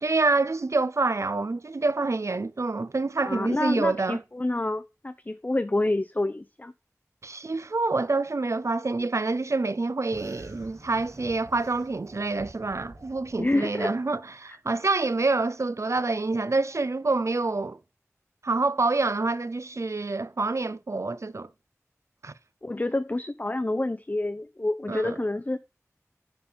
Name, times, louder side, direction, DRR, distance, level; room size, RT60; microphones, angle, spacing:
voice 1, 0.0-4.2 7.2-17.8 18.4-21.5 22.2-22.3 24.9-25.2, right 3 dB, 60° right, 0.4 m, -27 dB
voice 2, 3.2-6.7 13.4-13.9 22.6-25.6, left 2 dB, 30° left, 0.4 m, -28 dB
sound 1, 10.1-13.5, right 1 dB, 80° right, 1.8 m, -47 dB
9.7 x 3.7 x 4.1 m
wide cardioid pair, 45°, 6 cm